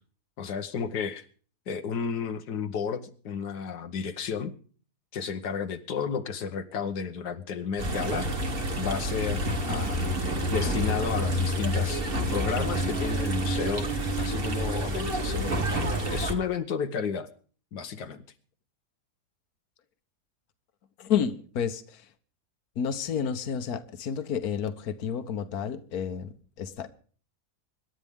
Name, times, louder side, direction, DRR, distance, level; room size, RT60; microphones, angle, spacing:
voice 1, 0.4-1.3 1.7-4.5 5.1-8.3 8.8-10.2 10.5-12.0 12.3-17.3 17.7-18.2, left 6 dB, 85° left, 1.7 m, -32 dB
sound 1, 7.8-16.3, equal, 35° right, 1.9 m, -28 dB
voice 2, 21.0-22.1 22.8-26.9, left 8 dB, 65° left, 1.6 m, -31 dB
26.5 x 11.5 x 3.6 m
omnidirectional pair, 1.7 m